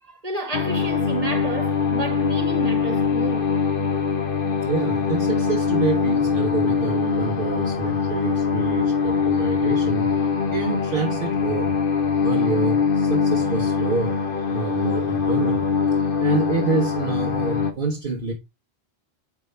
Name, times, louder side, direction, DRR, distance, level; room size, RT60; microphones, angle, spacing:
voice 1, 0.0-3.5, right 2 dB, 35° right, 1.8 m, -31 dB
sound 1, 0.5-17.7, left 6 dB, 60° left, 1.1 m, -23 dB
voice 2, 4.6-10.1 10.5-11.8 12.2-14.2 14.5-15.6 16.2-18.3, right 4 dB, 55° right, 1.3 m, -27 dB
8.2 x 5.4 x 3.3 m
omnidirectional pair, 1.1 m